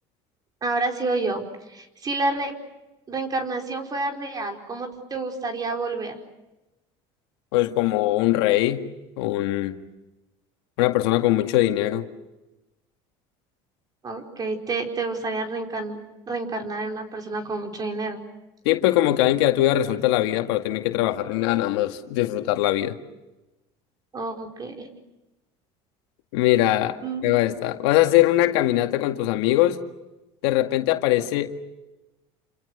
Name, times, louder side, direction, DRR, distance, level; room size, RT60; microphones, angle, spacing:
voice 1, 0.6-1.4 1.7-2.5 3.1-6.1 14.0-16.0 16.2-18.2 24.1-24.9 27.0-27.3, right 3 dB, 30° right, 3 dB, 5.0 m, -29 dB
voice 2, 7.5-8.9 9.2-9.8 10.8-12.1 18.7-23.0 26.3-27.0 27.2-29.8 30.4-31.5, left 15 dB, 85° left, 5 dB, 2.0 m, -21 dB
28.5 x 27.0 x 6.7 m, 1.0 s
supercardioid pair, 115°, 13 cm